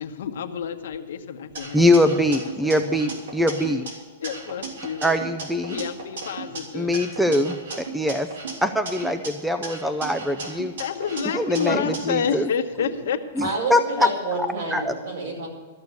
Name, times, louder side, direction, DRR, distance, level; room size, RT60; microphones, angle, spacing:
voice 1, 0.0-2.1 2.6-3.0 4.2-5.3 5.7-7.0 10.5-13.2, left 7 dB, 70° left, 7 dB, 1.1 m, -29 dB
sound 1, 1.6-3.9 4.2-6.6 6.9-9.3 9.6-12.0, right 3 dB, 80° right, 3.3 m, -35 dB
voice 2, 1.7-3.8 5.0-5.8 6.7-8.3 8.6-10.7 11.3-12.5 13.4-14.1 14.7-14.9, left 1 dB, ahead, 8 dB, 0.4 m, -22 dB
voice 3, 13.4-15.5, right 3 dB, 65° right, 0 dB, 5.2 m, -29 dB
13.5 x 6.7 x 9.4 m, 1.5 s
supercardioid pair, 165°, 0 cm